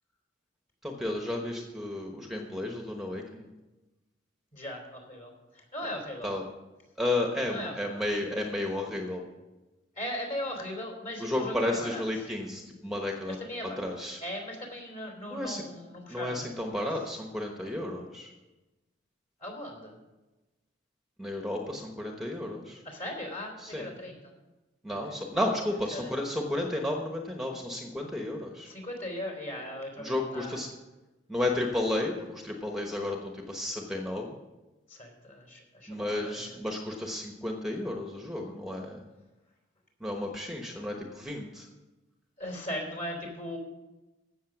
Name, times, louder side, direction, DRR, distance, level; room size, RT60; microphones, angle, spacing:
voice 1, 0.8-3.5 6.2-6.5 7.0-9.2 11.2-13.4 13.8-14.2 15.3-15.6 16.1-18.3 21.2-22.8 23.6-23.9 24.8-28.7 30.0-30.7 31.3-34.4 35.9-39.0 40.0-41.7, left 1 dB, ahead, 2 dB, 1.1 m, -32 dB
voice 2, 4.5-6.3 7.5-8.0 10.0-12.0 13.3-13.8 14.2-16.5 16.7-16.9 19.4-20.0 22.8-24.3 24.9-25.2 25.9-26.1 28.7-30.6 34.9-36.6 42.4-43.6, left 1 dB, 45° left, 1 dB, 3.6 m, -38 dB
15.5 x 6.5 x 6.0 m, 1.1 s
head